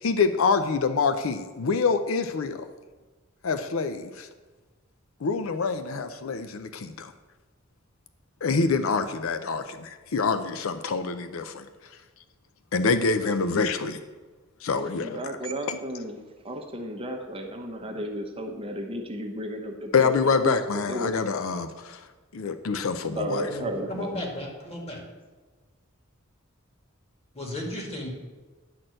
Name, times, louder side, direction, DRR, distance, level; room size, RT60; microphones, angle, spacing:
voice 1, 0.0-2.7 3.4-4.3 5.2-7.1 8.4-11.6 12.7-14.0 14.6-15.2 15.7-15.8 19.9-22.1 22.3-23.5, left 4 dB, 75° left, 9 dB, 0.5 m, -26 dB
voice 2, 15.0-16.2 16.4-20.1 20.4-21.1 23.1-24.1, equal, 25° right, 3 dB, 1.0 m, -33 dB
voice 3, 23.4-25.0 27.3-28.1, left 1 dB, 30° left, 0 dB, 2.1 m, -34 dB
10.5 x 4.3 x 7.7 m, 1.3 s
head